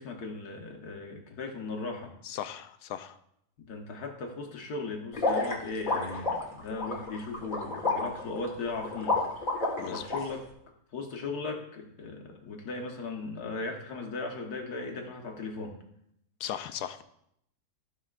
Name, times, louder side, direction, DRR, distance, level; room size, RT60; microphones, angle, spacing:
voice 1, 0.0-2.1 3.6-9.2 9.5-10.5 10.9-15.8, left 3 dB, 75° left, 2 dB, 1.7 m, -37 dB
voice 2, 2.2-3.2 9.8-10.2 16.4-17.0, left 10 dB, 90° left, 11 dB, 1.2 m, -38 dB
sound 1, 5.1-10.2, left 3 dB, 30° left, 1.5 m, -30 dB
15.0 x 5.7 x 2.4 m, 0.74 s
omnidirectional pair, 1.7 m